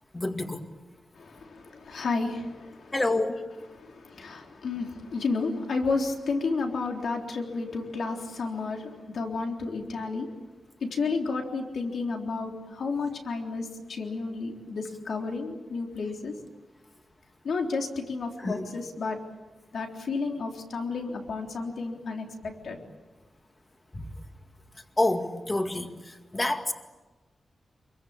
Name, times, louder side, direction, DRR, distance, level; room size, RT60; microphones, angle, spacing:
voice 1, 0.1-0.6 2.9-3.4 18.4-18.7 23.9-24.1 25.0-26.7, left 2 dB, 20° left, 5 dB, 2.0 m, -28 dB
voice 2, 1.2-2.9 3.7-10.3 10.8-16.3 17.4-19.2 19.7-22.3 22.6-22.8, left 4 dB, 80° left, 2 dB, 3.7 m, -31 dB
27.5 x 23.5 x 8.8 m, 1.2 s
wide cardioid pair, 150°, 0 cm